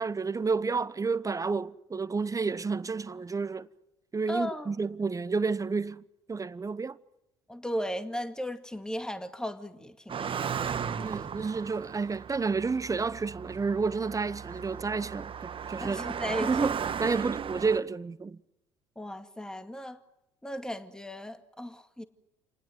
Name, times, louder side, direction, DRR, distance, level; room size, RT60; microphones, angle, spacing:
voice 1, 0.0-3.7 4.1-6.0 6.3-7.0 11.0-16.0 16.4-18.4, right 4 dB, 25° right, 1.0 m, -30 dB
voice 2, 4.3-4.7 7.5-10.5 15.8-16.5 17.0-17.2 19.0-20.0 20.4-22.0, equal, 5° left, 2.2 m, -36 dB
Car passing by, 10.1-17.8, right 7 dB, 40° right, 1.5 m, -36 dB
29.0 x 19.5 x 9.5 m
hypercardioid pair, 55°, 14 cm